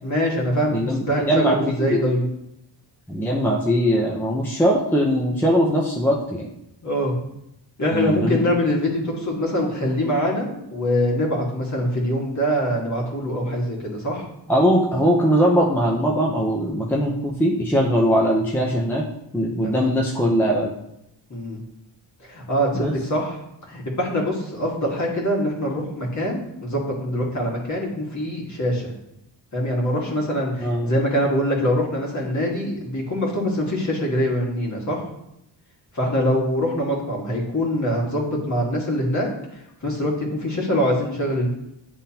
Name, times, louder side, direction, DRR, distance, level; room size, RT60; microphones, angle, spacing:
voice 1, 0.0-2.3 6.8-7.2 7.8-14.3 19.6-19.9 21.3-21.6 22.2-23.4 23.7-28.9 29.5-35.0 35.9-41.5, equal, 40° left, -2 dB, 1.7 m, -24 dB
voice 2, 0.7-2.1 3.1-6.5 7.9-8.5 14.5-19.0 19.3-20.7 22.7-22.9 30.6-30.9, equal, 5° left, -2 dB, 0.7 m, -20 dB
10.5 x 3.6 x 2.9 m, 0.81 s
wide cardioid pair, 120°, 44 cm